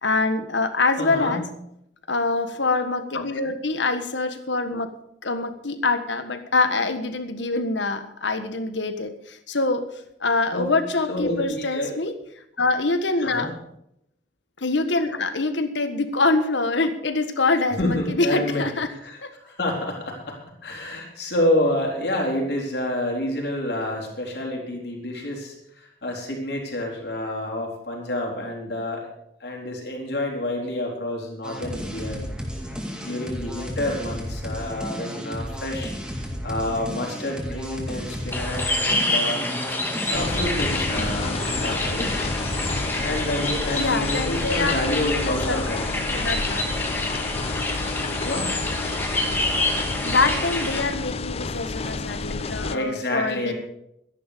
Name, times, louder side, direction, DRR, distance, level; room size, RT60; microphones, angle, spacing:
voice 1, 0.0-1.4 2.1-4.9 5.2-9.8 10.2-12.1 12.6-13.5 14.6-18.9 19.2-19.3 43.7-45.6 45.9-46.7 50.0-53.5, left 3 dB, 85° left, 9 dB, 1.5 m, -25 dB
voice 2, 1.0-1.4 10.5-10.6 11.1-11.9 13.2-13.5 17.8-29.1 29.4-32.3 33.0-35.9 36.4-39.8 40.1-42.1 43.0-45.9 48.2-48.5 52.3-53.5, left 1 dB, 65° left, -1 dB, 4.2 m, -28 dB
sound 1, 31.4-42.9, equal, 5° right, 2.2 m, -33 dB
sound 2, 38.3-50.8, left 2 dB, 10° left, 1.9 m, -28 dB
sound 3, 40.1-52.8, left 3 dB, 35° left, 0.5 m, -30 dB
13.0 x 10.5 x 6.7 m, 0.77 s
head